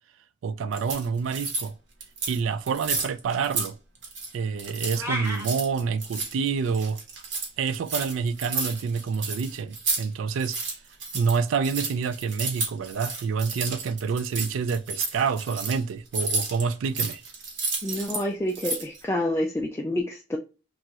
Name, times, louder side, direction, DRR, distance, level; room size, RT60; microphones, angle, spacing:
voice 1, 0.4-1.7 2.3-3.8 4.3-7.0 7.6-10.6 11.1-17.2, right 5 dB, 85° right, 0.3 m, -27 dB
sound 1, 0.7-1.7 2.0-2.4 2.7-3.7 3.9-4.3 4.6-10.0 10.3-18.2 18.5-19.0, right 3 dB, 65° right, 1.0 m, -31 dB
sound 2, 4.9-5.4, equal, 15° right, 0.8 m, -30 dB
voice 2, 17.8-20.4, left 1 dB, 15° left, 0.3 m, -28 dB
3.0 x 2.3 x 2.7 m
head